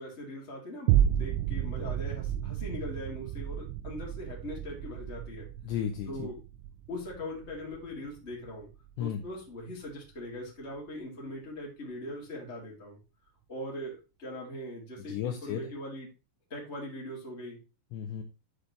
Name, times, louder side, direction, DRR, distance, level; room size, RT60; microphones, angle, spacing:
voice 1, 0.0-5.5 6.1-6.4 6.9-8.7 9.0-13.0 13.5-16.1 16.5-17.6, left 1 dB, 20° left, -2 dB, 2.3 m, -41 dB
sound 1, 0.9-9.4 9.9-10.0, right 11 dB, 85° right, 2.7 m, -32 dB
voice 2, 5.6-6.3 9.0-9.2 15.0-15.7 17.9-18.2, left 9 dB, 85° left, 6 dB, 2.5 m, -34 dB
11.5 x 5.2 x 3.2 m, 0.29 s
omnidirectional pair, 6.0 m